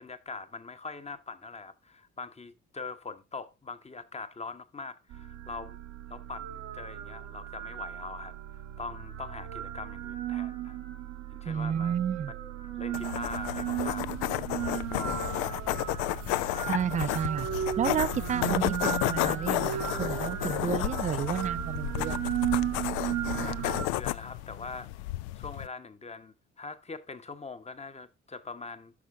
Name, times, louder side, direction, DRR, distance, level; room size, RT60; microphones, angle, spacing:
voice 1, 0.0-5.8 6.1-10.8 11.4-12.0 12.3-12.4 12.8-16.0 16.4-16.9 23.4-24.9 25.4-28.9, left 4 dB, 20° left, 1.0 m, -43 dB
sound 1, 5.1-23.9, right 11 dB, 65° right, 1.1 m, -35 dB
voice 2, 11.5-12.3 16.7-17.5 17.8-18.7 19.1-22.2, right 8 dB, 20° right, 0.4 m, -31 dB
sound 2, 12.9-25.7, left 17 dB, 65° left, 0.5 m, -32 dB
sound 3, 16.1-16.5 17.1-17.3 18.1-18.8 19.6-20.0, right 6 dB, 90° right, 1.0 m, -54 dB
9.6 x 6.0 x 3.6 m
figure-of-eight pair, 45°, 35 cm